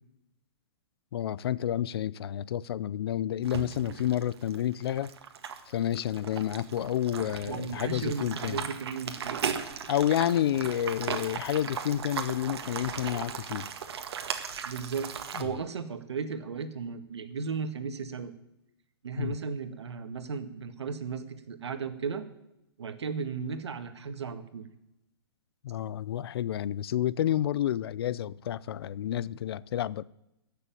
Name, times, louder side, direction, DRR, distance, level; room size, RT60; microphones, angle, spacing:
voice 1, 1.1-5.1 5.7-8.6 9.9-13.7 15.3-15.5 19.2-19.4 25.6-30.0, left 11 dB, 65° left, 0.5 m, -30 dB
sound 1, 3.4-15.4, right 7 dB, 70° right, 1.8 m, -37 dB
voice 2, 7.4-9.4 14.6-15.1 15.4-18.3 19.0-22.3 22.8-24.7, right 5 dB, 85° right, 1.8 m, -35 dB
15.5 x 6.9 x 9.1 m
hypercardioid pair, 145°, 14 cm